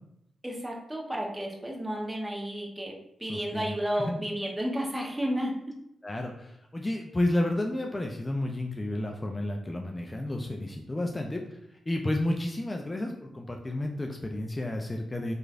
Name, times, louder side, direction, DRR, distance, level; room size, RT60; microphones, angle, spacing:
voice 1, 0.4-2.9 3.2-5.7, equal, 15° right, -1 dB, 0.8 m, -32 dB
voice 2, 3.3-4.2 6.0-15.3, left 1 dB, 25° left, 2 dB, 0.3 m, -31 dB
3.0 x 2.4 x 2.4 m, 0.80 s
supercardioid pair, 40°, 0 cm